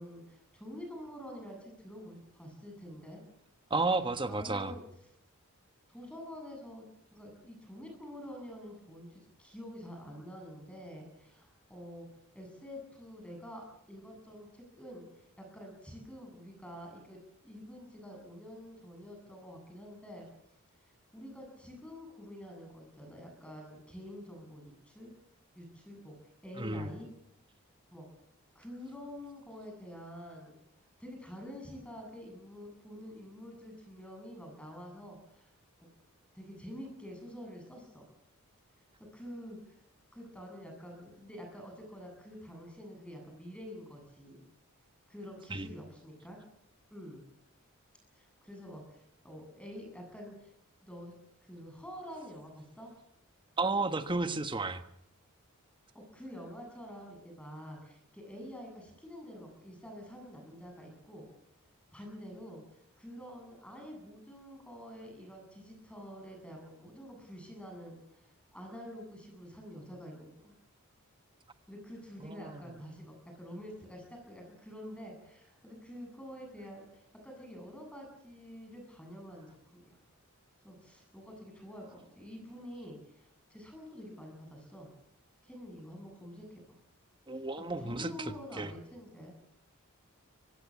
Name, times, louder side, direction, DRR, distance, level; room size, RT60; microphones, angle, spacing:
voice 1, 0.0-3.2 4.3-4.8 5.9-12.1 12.3-20.3 21.1-25.1 25.5-27.1 27.9-28.1 28.5-30.6 31.0-35.5 35.8-35.9 36.3-38.0 39.0-39.8 40.1-44.4 45.1-46.4 46.9-47.2 48.1-50.5 50.8-52.9 55.9-61.3 61.9-70.5 71.7-80.0 80.6-84.9 85.4-86.8 87.6-89.4, equal, 5° left, 3 dB, 7.8 m, -47 dB
voice 2, 3.7-4.7 26.6-26.9 45.5-45.7 53.6-54.8 72.2-72.7 87.3-88.7, right 3 dB, 20° right, 9 dB, 1.4 m, -33 dB
24.5 x 19.5 x 7.4 m, 0.76 s
head